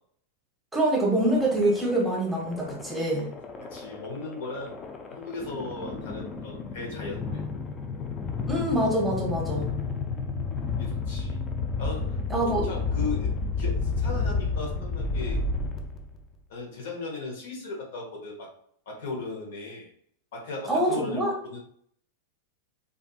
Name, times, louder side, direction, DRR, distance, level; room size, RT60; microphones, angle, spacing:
voice 1, 0.7-3.3 8.5-9.7 12.3-12.7 20.7-21.3, right 1 dB, 5° right, -3 dB, 0.9 m, -25 dB
sound 1, 1.2-16.3, left 4 dB, 30° left, 0.4 m, -31 dB
voice 2, 3.7-4.7 5.1-7.4 10.8-11.4 11.8-12.2 12.5-13.3 13.6-15.4 16.5-18.5 18.9-19.9 20.3-21.6, left 3 dB, 70° left, -1 dB, 1.0 m, -37 dB
2.5 x 2.5 x 2.4 m, 0.64 s
hypercardioid pair, 105°, 0 cm